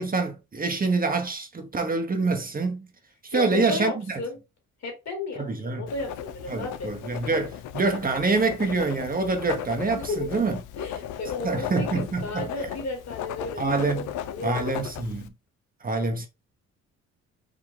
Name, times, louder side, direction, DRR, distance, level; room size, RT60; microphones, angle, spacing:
voice 1, 0.0-2.9 3.2-4.2 5.4-5.9 6.5-10.6 11.4-12.5 13.6-14.1 14.4-15.3 15.8-16.3, right 3 dB, 30° right, 0.9 m, -26 dB
voice 2, 3.3-4.4 4.8-6.9 9.9-10.5 10.8-14.8, left 3 dB, 60° left, 2.5 m, -34 dB
Writing, 5.9-15.3, left 10 dB, 85° left, 0.6 m, -36 dB
4.9 x 2.8 x 3.6 m
cardioid pair, 90°, 30 cm